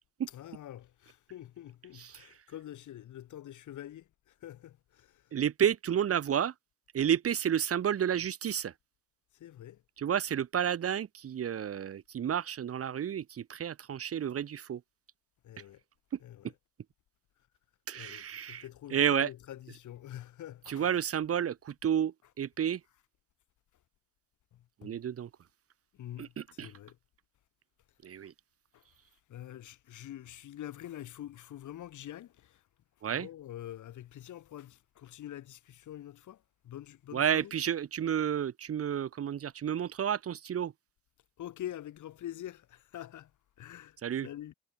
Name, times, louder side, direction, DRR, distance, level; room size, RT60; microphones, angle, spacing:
voice 1, 0.3-5.3 9.3-9.8 15.4-15.8 16.2-16.6 18.0-21.0 22.2-22.3 24.5-25.0 25.9-27.0 28.0-28.3 28.7-28.9 29.3-32.6 33.1-37.5 41.4-43.3 43.6-44.5, left 12 dB, 75° left, 7.2 m, -46 dB
voice 2, 1.9-2.4 5.3-6.5 6.9-8.7 10.0-14.8 16.1-16.2 17.9-18.6 18.9-19.3 20.7-22.8 24.8-25.3 26.2-26.7 28.0-28.3 33.0-33.3 37.1-40.7 44.0-44.3, right 9 dB, 50° right, 1.2 m, -31 dB
cardioid pair, 90°, 30 cm